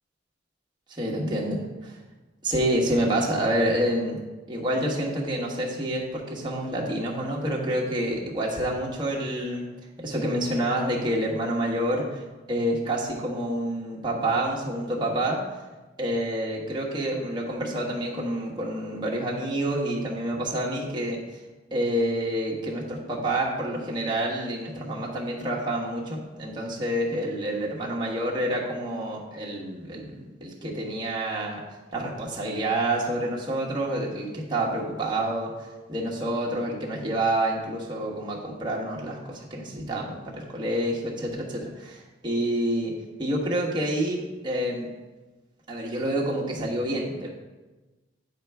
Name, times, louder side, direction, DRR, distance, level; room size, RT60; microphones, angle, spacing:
voice 1, 1.0-2.0 2.4-4.2 4.5-9.7 10.0-15.4 16.0-21.4 21.7-31.6 31.9-35.5 35.9-42.9 43.2-44.9 45.7-47.3, right 1 dB, 25° right, -4 dB, 1.2 m, -28 dB
9.6 x 4.4 x 3.4 m, 1.2 s
head